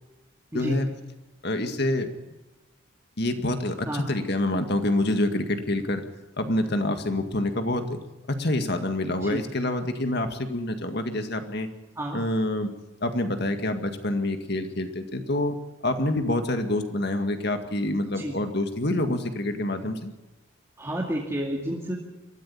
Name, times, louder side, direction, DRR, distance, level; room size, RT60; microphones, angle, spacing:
voice 1, 0.5-0.9 1.4-2.1 3.2-6.0 6.4-8.0 8.3-11.7 12.1-12.7 13.0-15.6 15.8-20.1, left 1 dB, 50° left, 7 dB, 2.0 m, -27 dB
voice 2, 20.8-22.0, right 1 dB, 15° right, -3 dB, 2.3 m, -30 dB
22.5 x 14.5 x 8.6 m, 1.1 s
head